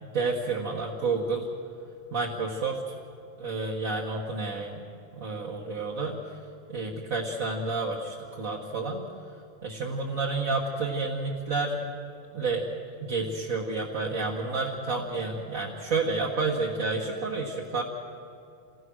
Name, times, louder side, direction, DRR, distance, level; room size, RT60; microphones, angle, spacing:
voice 1, 0.0-1.5 2.1-2.9 3.4-4.8 5.1-6.2 6.7-9.0 9.6-11.8 12.3-12.7 13.0-17.8, right 3 dB, 80° right, -3 dB, 2.1 m, -30 dB
28.0 x 17.5 x 6.3 m, 2.4 s
omnidirectional pair, 1.4 m